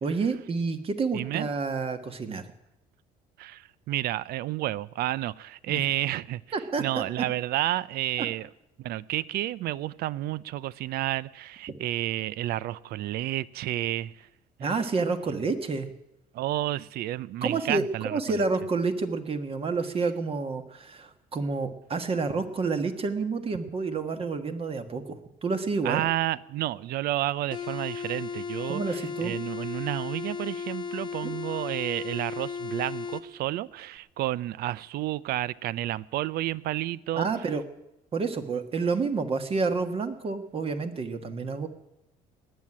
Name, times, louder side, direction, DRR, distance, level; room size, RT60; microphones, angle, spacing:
voice 1, 0.0-2.5 5.7-5.8 6.5-7.2 14.6-15.9 17.4-26.0 28.7-29.3 31.2-31.4 37.1-37.6 38.1-41.7, right 4 dB, 35° right, 1.5 m, -29 dB
voice 2, 1.1-1.5 3.4-6.4 6.8-8.5 8.8-14.3 16.3-18.4 25.8-37.3, right 15 dB, 65° right, 0.6 m, -31 dB
sound 1, 27.5-33.3, left 5 dB, 25° left, 1.1 m, -35 dB
19.0 x 7.7 x 9.8 m
cardioid pair, 125°, 17 cm